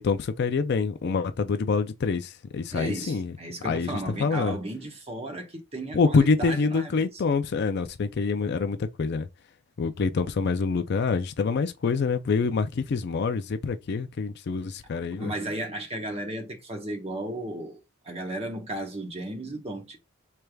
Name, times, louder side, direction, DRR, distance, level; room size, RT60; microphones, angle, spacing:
voice 1, 0.0-3.3 3.6-4.6 5.9-9.3 9.8-15.3, left 4 dB, 50° left, 0.4 m, -26 dB
voice 2, 2.7-7.2 15.2-20.0, right 1 dB, 25° right, 1.0 m, -34 dB
4.5 x 3.3 x 2.3 m
head